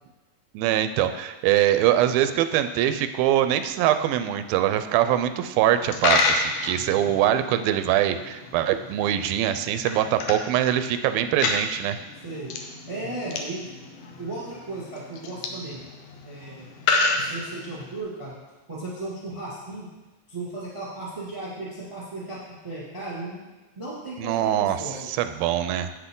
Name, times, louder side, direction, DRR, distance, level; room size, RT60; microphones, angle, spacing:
voice 1, 0.5-12.0 24.2-25.9, right 11 dB, 90° right, 10 dB, 2.4 m, -23 dB
Coin (dropping), 5.7-18.0, left 3 dB, 75° left, 2.0 m, -30 dB
voice 2, 12.2-12.5 12.9-13.6 14.2-15.8 16.2-16.7 17.2-18.3 18.7-19.8 20.3-22.4 22.6-23.5 23.7-25.1, right 2 dB, 15° right, -7 dB, 1.4 m, -35 dB
8.4 x 8.0 x 3.8 m, 1.2 s
omnidirectional pair, 4.1 m